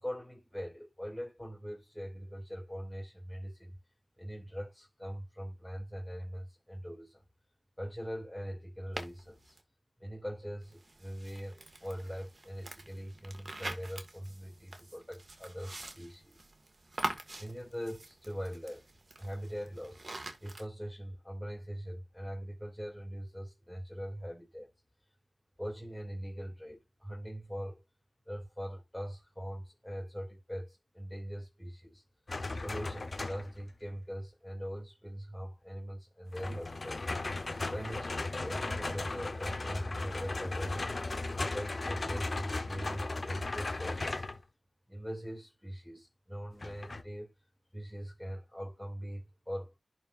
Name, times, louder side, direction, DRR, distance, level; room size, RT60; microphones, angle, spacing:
voice 1, 0.0-3.8 4.2-7.2 7.8-9.5 10.0-16.5 17.4-18.9 19.2-20.0 20.4-24.7 25.6-27.8 28.3-32.0 32.6-37.0 37.7-40.8 41.3-44.2 44.9-47.3 47.7-49.7, equal, 10° left, 2.6 m, -42 dB
sound 1, 9.0-9.6 10.6-20.6, right 2 dB, 55° right, 1.8 m, -44 dB
sound 2, 32.3-33.6 36.3-44.4 46.6-47.0, left 2 dB, 60° left, 1.0 m, -36 dB
11.0 x 4.6 x 2.6 m
cardioid pair, 45°, 0 cm